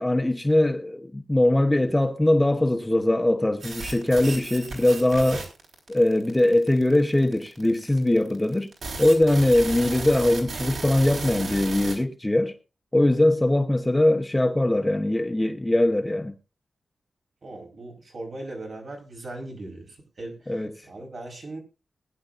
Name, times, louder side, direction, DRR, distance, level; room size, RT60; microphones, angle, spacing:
voice 1, 0.0-5.5 5.9-8.7 9.0-12.5 12.9-16.3 20.5-20.9, left 1 dB, 10° left, 0.9 m, -21 dB
sound 1, 3.6-12.0, right 3 dB, 65° right, 4.6 m, -35 dB
voice 2, 17.4-21.6, right 2 dB, 50° right, 4.5 m, -39 dB
21.0 x 10.5 x 2.5 m
wide cardioid pair, 160°, 0 cm